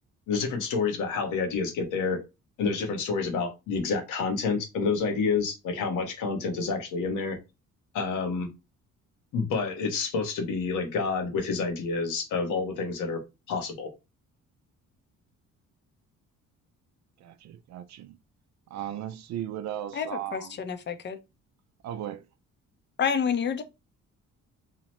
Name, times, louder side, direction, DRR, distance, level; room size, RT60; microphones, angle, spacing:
voice 1, 0.3-2.2 2.6-7.4 7.9-8.5 9.3-13.2 13.5-13.9, left 4 dB, 90° left, 0.9 m, -28 dB
voice 2, 17.2-18.2 18.7-20.6 21.8-22.3, right 10 dB, 65° right, 0.4 m, -36 dB
voice 3, 19.9-21.2 23.0-23.6, left 7 dB, 35° left, 0.5 m, -29 dB
2.8 x 2.0 x 3.0 m
cardioid pair, 90°, 30 cm